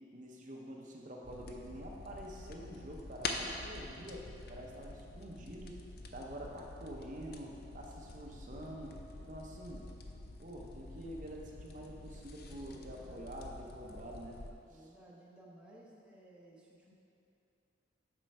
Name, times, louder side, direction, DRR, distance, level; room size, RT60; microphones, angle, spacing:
voice 1, 0.1-5.8 6.1-9.9 10.4-14.4 14.7-14.9, right 1 dB, 40° right, -1 dB, 0.7 m, -47 dB
sound 1, 1.2-14.5, left 3 dB, 50° left, 0.5 m, -47 dB
voice 2, 12.7-13.4 14.7-16.9, right 1 dB, 5° right, -5 dB, 0.7 m, -58 dB
7.6 x 4.4 x 5.3 m, 2.8 s
head